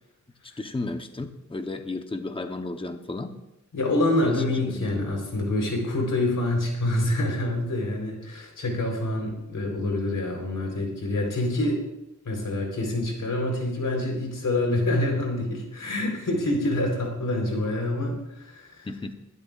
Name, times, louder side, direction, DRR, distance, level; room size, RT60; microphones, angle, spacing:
voice 1, 0.6-3.4 4.2-5.1 18.8-19.1, left 2 dB, 15° left, 6 dB, 0.9 m, -33 dB
voice 2, 3.7-11.8 12.2-18.9, left 1 dB, 85° left, 1 dB, 3.9 m, -26 dB
22.0 x 12.5 x 2.4 m, 0.91 s
wide cardioid pair, 125°, 31 cm